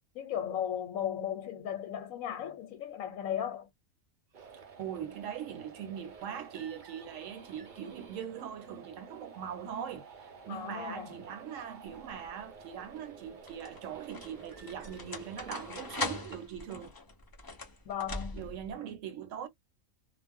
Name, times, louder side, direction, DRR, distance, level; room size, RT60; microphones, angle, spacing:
voice 1, 0.1-3.7 10.5-11.2 17.9-18.5, left 9 dB, 85° left, 1.1 m, -36 dB
sound 1, 4.3-16.3, right 5 dB, 50° right, 0.6 m, -51 dB
voice 2, 4.4-16.9 18.3-19.5, right 9 dB, 70° right, 0.9 m, -41 dB
sound 2, 11.9-12.4 13.2-18.7, left 3 dB, 35° left, 0.3 m, -41 dB
2.4 x 2.0 x 3.4 m
omnidirectional pair, 1.4 m